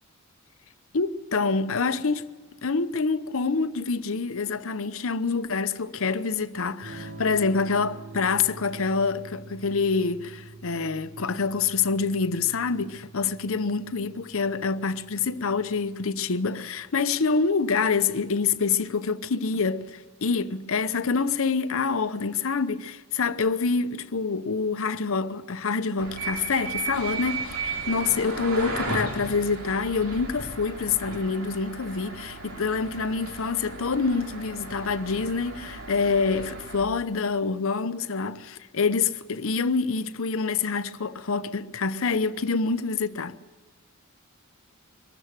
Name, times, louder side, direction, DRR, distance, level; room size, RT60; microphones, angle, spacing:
voice 1, 0.9-2.3 2.6-43.4, left 4 dB, 65° left, 0.8 m, -26 dB
Electric guitar / Strum, 6.8-16.6, right 3 dB, 70° right, 2.9 m, -46 dB
sound 1, 26.0-36.8, right 3 dB, 90° right, 3.1 m, -35 dB
23.5 x 13.5 x 8.9 m
head